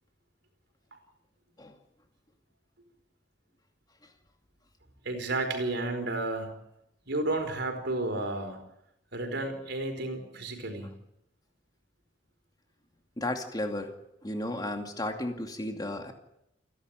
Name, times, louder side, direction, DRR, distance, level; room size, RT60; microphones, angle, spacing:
voice 1, 5.0-6.6 7.1-8.6 9.1-10.9, right 2 dB, 65° right, 5 dB, 4.8 m, -32 dB
voice 2, 13.2-13.9 14.2-16.1, left 1 dB, 20° left, 5 dB, 2.5 m, -33 dB
28.5 x 11.5 x 9.1 m, 0.82 s
head